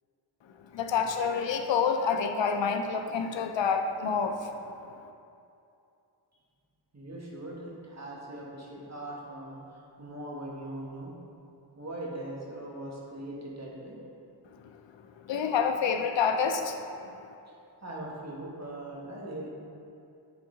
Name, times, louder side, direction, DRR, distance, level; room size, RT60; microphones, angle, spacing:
voice 1, 0.7-4.5 15.3-16.8, left 6 dB, 75° left, 6 dB, 0.5 m, -27 dB
voice 2, 6.9-11.1 11.8-14.0 17.5-17.6 17.8-19.5, right 1 dB, 35° right, -4 dB, 1.5 m, -40 dB
8.2 x 3.7 x 3.8 m, 2.7 s
cardioid pair, 50°, 46 cm